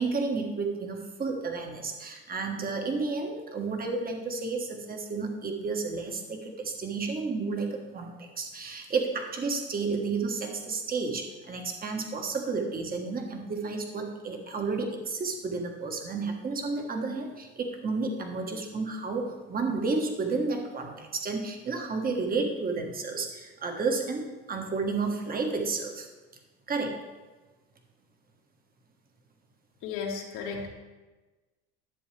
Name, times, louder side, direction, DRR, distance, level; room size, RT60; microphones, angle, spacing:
voice 1, 0.0-26.1 26.7-27.0, right 4 dB, 25° right, 3 dB, 1.4 m, -31 dB
voice 2, 29.8-30.7, left 5 dB, 65° left, -1 dB, 2.0 m, -34 dB
11.5 x 7.2 x 3.4 m, 1.2 s
supercardioid pair, 100°, 32 cm